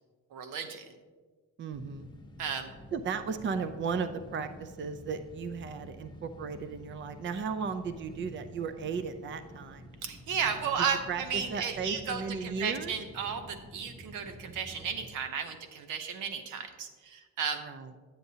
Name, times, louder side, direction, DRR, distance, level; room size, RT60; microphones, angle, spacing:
voice 1, 0.3-0.9 2.4-2.8 10.0-17.6, right 7 dB, 85° right, 8 dB, 0.8 m, -34 dB
voice 2, 1.6-2.1 2.9-9.9 10.4-12.9 17.6-17.9, right 5 dB, 40° right, 10 dB, 0.5 m, -35 dB
sound 1, 1.7-15.1, equal, 15° left, 0.9 m, -50 dB
9.2 x 9.0 x 2.8 m, 1.4 s
cardioid pair, 90°, 30 cm